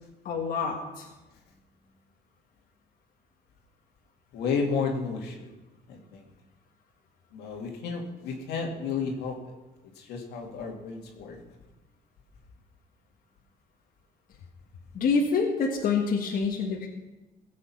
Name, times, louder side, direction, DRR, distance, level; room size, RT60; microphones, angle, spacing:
voice 1, 0.3-1.1 14.9-16.9, left 5 dB, 60° left, 0 dB, 1.7 m, -26 dB
voice 2, 4.3-5.5 5.9-6.3 7.3-9.4 10.0-11.4, left 5 dB, 80° left, 1 dB, 2.3 m, -32 dB
16.0 x 7.5 x 5.8 m, 1.1 s
cardioid pair, 110°, 17 cm